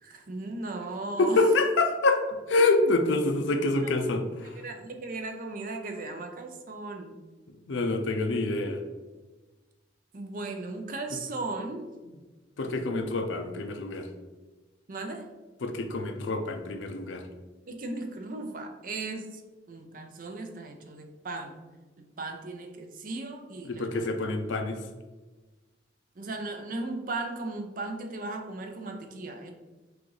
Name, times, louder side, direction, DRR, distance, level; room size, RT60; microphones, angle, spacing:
voice 1, 0.0-1.4 3.8-3.9 4.4-7.2 10.1-11.9 14.9-15.3 17.7-19.4 19.7-21.6 22.0-24.1 26.2-29.5, right 2 dB, 45° right, 5 dB, 0.5 m, -37 dB
voice 2, 1.2-4.6 7.5-8.8 12.6-14.1 15.6-17.3 23.6-24.8, left 2 dB, 80° left, 5 dB, 0.5 m, -26 dB
6.0 x 2.5 x 3.2 m, 1.2 s
head